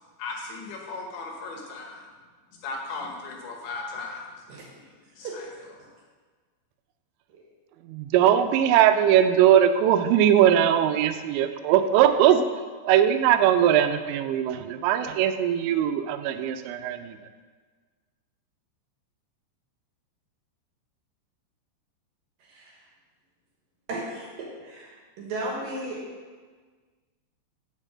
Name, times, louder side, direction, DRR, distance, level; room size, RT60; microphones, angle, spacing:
voice 1, 0.2-2.0 2.6-4.3 5.2-5.3, left 3 dB, 70° left, 0 dB, 3.0 m, -36 dB
voice 2, 4.5-4.9 5.2-5.4 5.8-5.9 7.3-7.4 22.4-22.9 23.9-26.0, right 2 dB, 65° right, -3 dB, 2.6 m, -36 dB
voice 3, 7.8-12.5 12.8-17.2, right 10 dB, 85° right, 9 dB, 2.8 m, -20 dB
7.3 x 5.5 x 7.3 m, 1.5 s
omnidirectional pair, 5.1 m